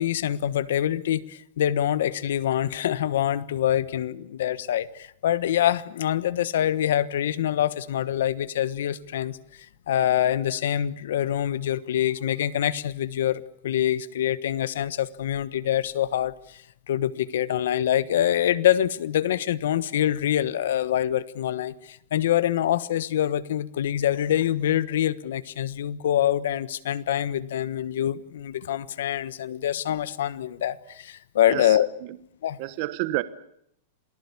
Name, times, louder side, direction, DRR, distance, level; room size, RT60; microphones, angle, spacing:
voice 1, 0.0-31.9 32.4-32.6, left 11 dB, 70° left, 17 dB, 1.3 m, -25 dB
voice 2, 31.5-32.2 32.6-33.2, right 18 dB, 35° right, 14 dB, 1.1 m, -30 dB
28.0 x 19.0 x 8.4 m, 0.71 s
supercardioid pair, 175°, 0 cm